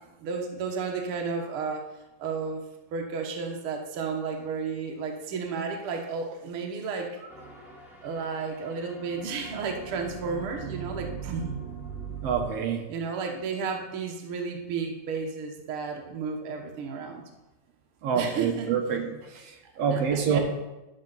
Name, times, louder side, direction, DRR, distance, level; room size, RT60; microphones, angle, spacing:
voice 1, 0.2-1.9 2.2-2.6 2.9-7.2 8.0-11.6 12.9-17.2 18.1-18.7 19.9-20.4, right 5 dB, 85° right, 2 dB, 1.2 m, -32 dB
sound 1, 7.3-12.5, right 6 dB, ahead, 1.8 m, -40 dB
voice 2, 12.2-12.8 18.0-20.4, right 6 dB, 65° right, 2 dB, 1.6 m, -27 dB
12.0 x 6.6 x 4.0 m, 1.0 s
omnidirectional pair, 4.1 m